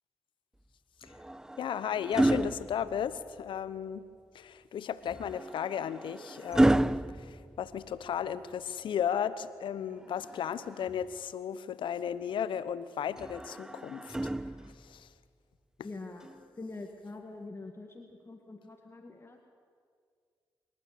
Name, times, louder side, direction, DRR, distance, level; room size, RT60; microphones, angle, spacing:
sound 1, 1.0-3.5 5.1-8.3 10.0-11.2 13.2-15.0 16.2-16.4, right 1 dB, 5° right, 0.5 m, -31 dB
voice 1, 1.6-4.1 4.3-14.2 14.8-15.1, left 8 dB, 65° left, 14 dB, 1.0 m, -35 dB
voice 2, 15.8-16.3 16.6-19.4, left 3 dB, 30° left, 3 dB, 2.0 m, -44 dB
26.0 x 12.0 x 8.6 m, 2.1 s
supercardioid pair, 50°, 9 cm